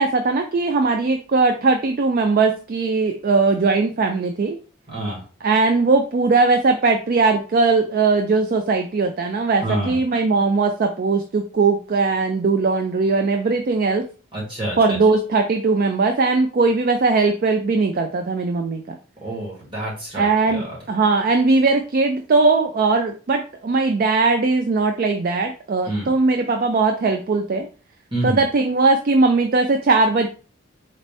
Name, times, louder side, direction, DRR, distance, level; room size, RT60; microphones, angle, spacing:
voice 1, 0.0-4.6 5.4-14.0 14.8-19.0 20.1-27.7 28.2-30.3, right 3 dB, 40° right, 5 dB, 0.3 m, -19 dB
voice 2, 4.9-5.2 9.6-10.0 14.3-15.0 19.2-20.8 25.8-26.1 28.1-28.4, right 1 dB, 25° right, -5 dB, 1.6 m, -27 dB
4.1 x 2.6 x 3.3 m, 0.37 s
head